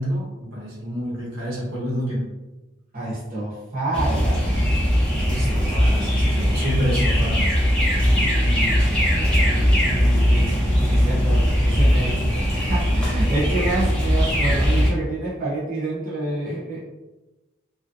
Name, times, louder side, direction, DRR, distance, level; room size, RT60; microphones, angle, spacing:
voice 1, 0.0-2.2 5.3-7.5, equal, 70° right, -4 dB, 1.0 m, -28 dB
voice 2, 2.9-4.5 7.9-8.8 9.4-16.8, right 2 dB, 40° right, -8 dB, 0.8 m, -28 dB
sound 1, 3.9-14.9, equal, 5° left, 0.5 m, -20 dB
3.0 x 2.6 x 2.5 m, 1.1 s
head